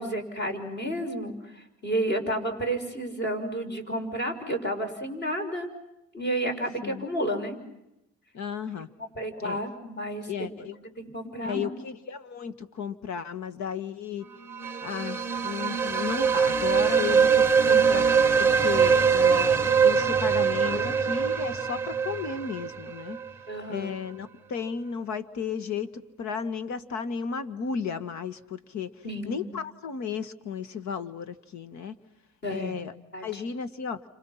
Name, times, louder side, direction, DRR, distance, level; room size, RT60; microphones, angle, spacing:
voice 1, 0.0-5.7 6.1-7.6 9.2-10.5 10.8-11.7 20.6-21.0 23.5-23.9 29.0-29.4 32.4-32.8 33.1-33.4, right 1 dB, 30° left, 5 dB, 6.1 m, -31 dB
voice 2, 8.3-8.9 9.4-9.6 10.3-10.8 11.4-14.3 14.8-18.0 18.4-23.2 23.7-28.9 29.3-31.9 32.5-32.9 33.2-34.0, left 6 dB, 55° left, 13 dB, 1.8 m, -34 dB
sound 1, 14.5-23.3, right 6 dB, 5° right, 1.2 m, -23 dB
29.5 x 27.0 x 5.9 m, 0.87 s
cardioid pair, 125°, 33 cm